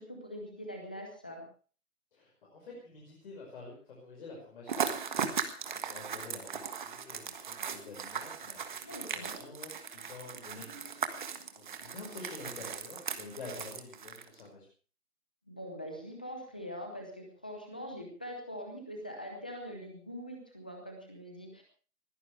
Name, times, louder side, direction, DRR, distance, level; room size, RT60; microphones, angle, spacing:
voice 1, 0.0-1.4 8.8-9.5 15.5-21.6, equal, 5° left, 2 dB, 0.7 m, -43 dB
voice 2, 2.1-14.7, left 3 dB, 35° left, -1 dB, 5.5 m, -49 dB
sound 1, 4.7-14.4, right 7 dB, 30° right, 1.6 m, -38 dB
21.0 x 15.5 x 3.4 m, 0.40 s
figure-of-eight pair, 155°, 47 cm